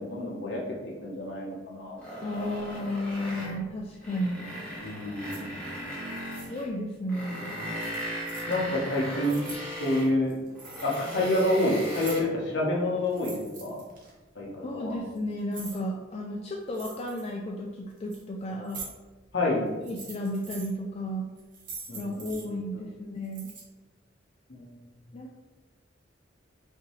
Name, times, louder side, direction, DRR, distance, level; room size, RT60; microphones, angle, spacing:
voice 1, 0.0-2.0 4.8-5.5 8.5-9.5 9.8-10.4 10.8-13.8 14.3-15.0 19.3-19.7 21.9-22.3 24.5-24.8, left 1 dB, 65° left, -3 dB, 1.0 m, -28 dB
Neighbour drilling into external wall, 2.0-3.6 4.0-6.7 7.1-10.1 10.6-12.2, equal, 5° left, 1.1 m, -37 dB
voice 2, 2.2-4.5 6.5-7.6 14.6-18.9 19.8-21.3 21.9-23.5 25.1-25.4, equal, 30° left, -1 dB, 0.3 m, -33 dB
sound 1, 5.2-5.4 6.1-6.5 7.8-8.5 9.0-9.6 10.2-11.1 11.4-12.4 13.0-14.1 14.9-15.8 16.7-17.3 17.9-18.2 18.6-18.9 19.7-20.7 21.4-22.4 23.2-23.6, right 4 dB, 45° right, 1.0 m, -44 dB
5.0 x 2.7 x 3.1 m, 1.2 s
head